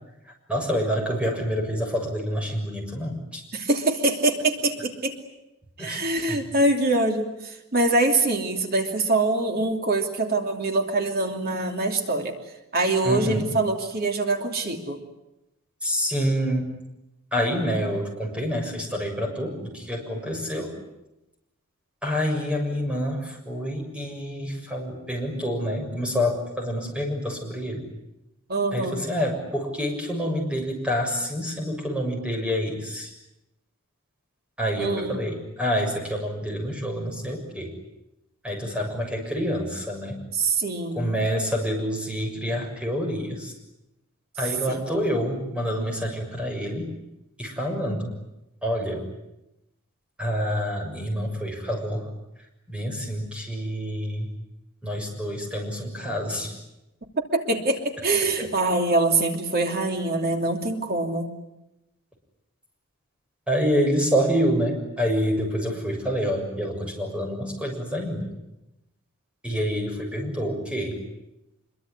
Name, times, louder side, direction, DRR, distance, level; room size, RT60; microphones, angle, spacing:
voice 1, 0.5-3.4 5.8-6.0 6.3-6.4 13.0-13.5 15.8-16.7 17.3-20.7 22.0-27.9 28.7-33.1 34.6-37.7 38.4-40.2 40.9-43.5 44.4-46.9 47.4-48.1 48.6-49.0 50.2-52.1 52.7-54.3 54.8-56.6 58.4-58.5 63.5-68.3 69.4-71.0, equal, 5° right, 2 dB, 6.9 m, -27 dB
voice 2, 3.5-5.1 5.8-12.3 12.7-15.0 28.5-29.0 34.8-35.2 40.3-41.1 44.7-44.9 57.2-61.3, right 2 dB, 45° right, 4 dB, 2.9 m, -24 dB
25.5 x 23.0 x 9.8 m, 0.92 s
head